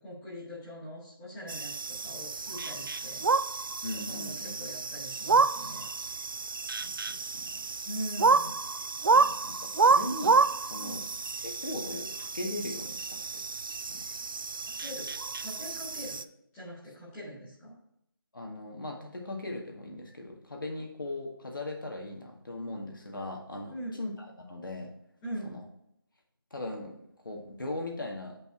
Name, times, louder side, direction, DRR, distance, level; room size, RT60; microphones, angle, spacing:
voice 1, 0.0-3.2 3.9-5.8 7.8-8.6 10.8-11.0 14.7-15.1 15.4-16.2 16.5-17.7 23.7-23.9 25.2-25.6, equal, 5° left, -10 dB, 0.9 m, -42 dB
sound 1, 1.5-16.2, right 4 dB, 65° right, 0.4 m, -29 dB
voice 2, 3.8-4.5 6.8-7.5 9.1-11.0 11.4-13.4 13.9-14.1 18.3-24.9 25.4-25.6 26.5-28.4, left 1 dB, 65° left, 1 dB, 2.0 m, -39 dB
7.2 x 5.5 x 4.5 m, 0.76 s
figure-of-eight pair, 175°, 12 cm